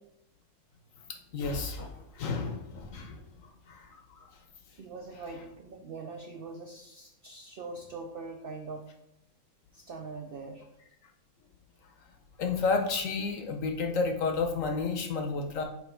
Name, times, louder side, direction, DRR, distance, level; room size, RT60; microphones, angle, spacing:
voice 1, 1.3-1.8 2.1-3.2 3.7-4.3 12.4-15.6, left 4 dB, 65° left, 4 dB, 1.1 m, -31 dB
sound 1, 1.4-2.1 2.7-3.6, left 3 dB, 40° left, 0.9 m, -43 dB
voice 2, 4.7-8.8 9.7-10.6, right 3 dB, 65° right, 3 dB, 0.5 m, -42 dB
7.3 x 3.0 x 4.3 m, 0.82 s
omnidirectional pair, 1.5 m